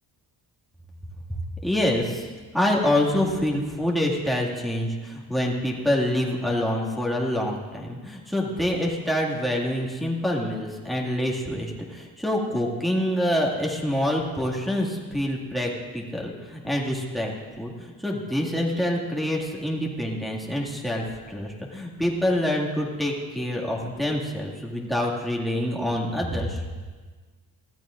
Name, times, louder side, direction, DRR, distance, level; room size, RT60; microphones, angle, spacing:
voice 1, 1.6-2.3 2.5-26.6, left 1 dB, ahead, -2 dB, 2.1 m, -26 dB
24.5 x 15.5 x 2.5 m, 1.4 s
wide cardioid pair, 140°, 38 cm